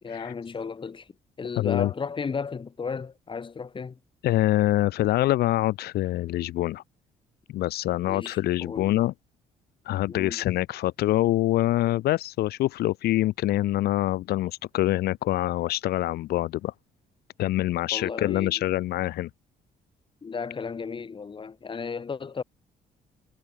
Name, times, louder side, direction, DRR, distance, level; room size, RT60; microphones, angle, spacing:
voice 1, 0.0-1.1 1.4-4.0 8.1-9.0 10.1-10.4 17.9-18.6 20.2-22.4, left 5 dB, 30° left, 3.3 m, -34 dB
voice 2, 1.6-1.9 4.2-6.8 7.5-9.1 9.9-16.7 17.4-19.3, left 15 dB, 80° left, 0.9 m, -25 dB
cardioid pair, 115°, 16 cm